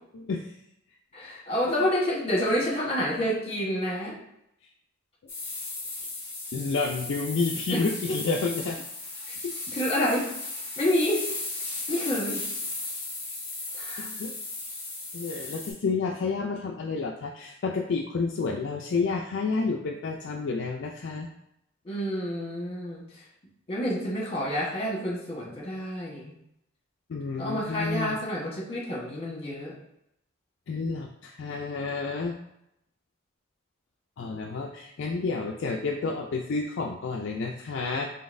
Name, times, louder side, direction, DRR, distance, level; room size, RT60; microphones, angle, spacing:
voice 1, 0.1-0.5 1.2-1.3 6.5-8.8 9.4-9.5 14.0-14.3 15.1-21.3 27.1-28.2 30.7-32.3 34.2-38.1, left 4 dB, 60° left, 0 dB, 0.4 m, -30 dB
voice 2, 1.1-4.2 7.7-8.2 9.3-9.4 9.7-10.3 10.8-11.2 11.9-12.4 13.7-14.1 15.3-15.4 21.8-23.0 23.7-26.3 27.4-29.7, equal, 30° left, -3 dB, 1.2 m, -28 dB
sound 1, 5.3-15.7, left 2 dB, 10° left, 1.5 m, -36 dB
3.9 x 3.9 x 2.6 m, 0.80 s
head